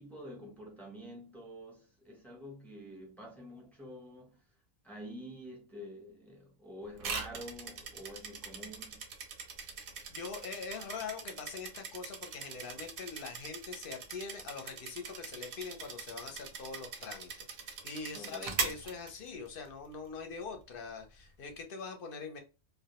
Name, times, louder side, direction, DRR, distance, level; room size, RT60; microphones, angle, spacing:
voice 1, 0.0-4.4 4.8-9.0 18.1-18.6, equal, ahead, 0.5 m, -48 dB
sound 1, 7.0-19.7, right 5 dB, 60° right, 0.7 m, -42 dB
voice 2, 10.1-22.4, left 5 dB, 60° left, 0.7 m, -43 dB
2.2 x 2.1 x 2.8 m
omnidirectional pair, 1.2 m